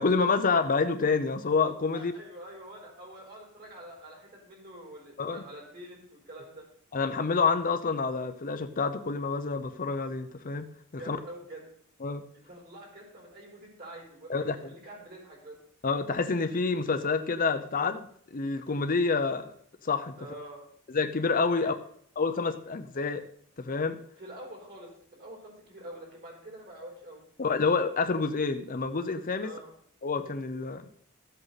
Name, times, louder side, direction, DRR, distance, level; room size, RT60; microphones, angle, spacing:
voice 1, 0.0-2.1 5.2-5.4 6.9-10.7 11.1-11.2 12.0-12.2 14.3-14.6 15.8-18.1 18.3-19.5 19.8-20.1 20.9-21.7 22.2-23.2 23.6-24.0 27.4-29.5 30.0-30.8, left 4 dB, 40° left, 8 dB, 0.6 m, -28 dB
voice 2, 1.9-6.7 11.0-11.6 12.3-15.6 20.2-20.6 21.5-21.7 24.2-27.2 29.4-29.7, right 1 dB, 45° right, -2 dB, 4.4 m, -46 dB
13.5 x 8.0 x 4.1 m, 0.63 s
head